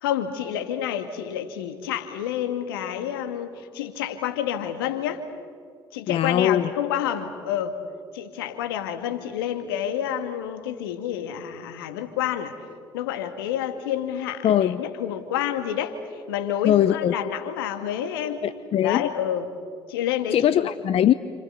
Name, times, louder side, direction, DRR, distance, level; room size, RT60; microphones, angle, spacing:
voice 1, 0.0-5.2 5.9-7.8 8.1-12.5 12.9-16.0 16.3-18.4 18.8-19.5 19.9-20.7, left 10 dB, 85° left, 7 dB, 2.1 m, -29 dB
voice 2, 6.1-6.7 14.4-14.8 16.6-17.1 18.4-19.1 20.3-21.1, left 11 dB, 55° left, 13 dB, 0.9 m, -21 dB
30.0 x 28.0 x 6.9 m, 2.2 s
hypercardioid pair, 55°, 12 cm